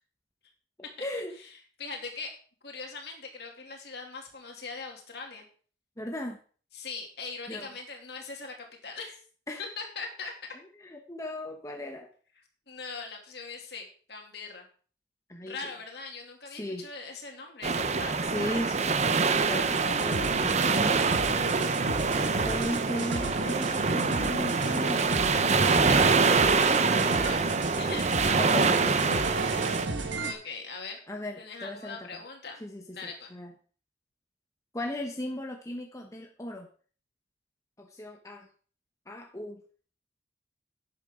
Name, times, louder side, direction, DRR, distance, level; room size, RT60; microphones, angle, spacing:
voice 1, 1.0-1.3 6.0-6.4 7.5-7.7 9.5-9.6 10.8-12.1 15.3-15.7 16.5-16.9 18.1-18.8 19.4-21.2 22.5-25.2 28.4-29.7 31.1-32.2 32.6-33.5 34.7-36.7 37.8-38.5 39.1-39.6, left 1 dB, 15° left, 2 dB, 1.0 m, -37 dB
voice 2, 1.8-2.3 2.6-5.5 6.7-9.2 9.8-10.3 12.7-14.7 15.4-19.0 25.7-26.2 26.6-28.0 30.1-31.0 31.4-32.6 32.9-33.3, left 4 dB, 60° left, 2 dB, 2.6 m, -41 dB
sound 1, 17.6-29.9, right 4 dB, 35° right, 0.6 m, -25 dB
sound 2, 19.7-30.3, right 2 dB, 80° right, 1.4 m, -34 dB
12.0 x 8.9 x 3.7 m, 0.42 s
head